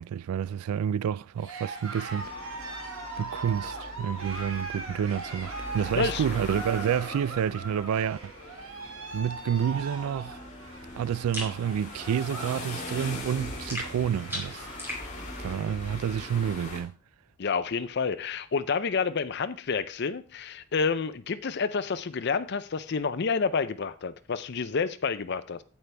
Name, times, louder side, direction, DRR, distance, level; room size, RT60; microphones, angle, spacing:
voice 1, 0.0-2.3 3.2-8.3 9.1-10.4 10.9-14.7 15.4-17.0, right 8 dB, 85° right, 0.3 m, -29 dB
Cheering, 1.3-12.6 12.9-13.3 13.8-13.9 14.0-14.9, right 3 dB, 65° right, 1.5 m, -40 dB
sound 1, 2.1-16.8, left 2 dB, 35° left, 2.2 m, -41 dB
sound 2, 11.3-11.6 13.7-15.1, left 1 dB, 10° right, 2.5 m, -36 dB
voice 2, 17.4-25.6, left 5 dB, 50° left, 0.5 m, -29 dB
8.8 x 8.2 x 3.4 m
head